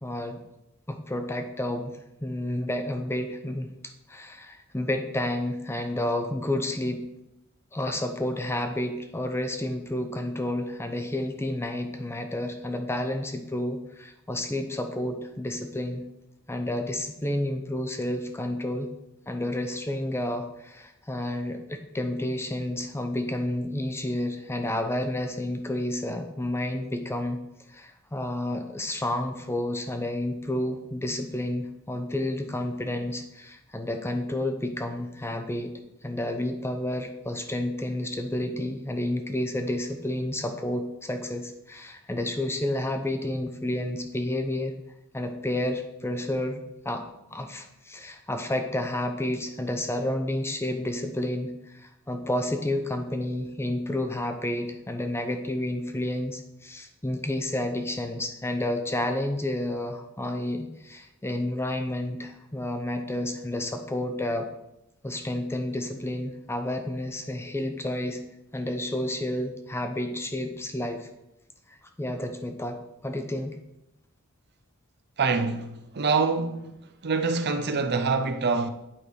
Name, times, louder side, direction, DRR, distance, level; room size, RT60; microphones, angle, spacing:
voice 1, 0.0-0.4 0.9-3.7 4.1-7.0 7.7-16.0 16.5-18.9 19.3-27.4 27.7-35.7 36.0-44.7 45.1-47.1 47.3-64.5 65.0-68.2 68.5-71.1 71.7-72.8 73.0-73.6, left 1 dB, 10° left, 0.6 m, -30 dB
voice 2, 75.2-76.8 77.0-78.7, right 4 dB, 50° right, 0.6 m, -25 dB
8.8 x 4.8 x 5.1 m
head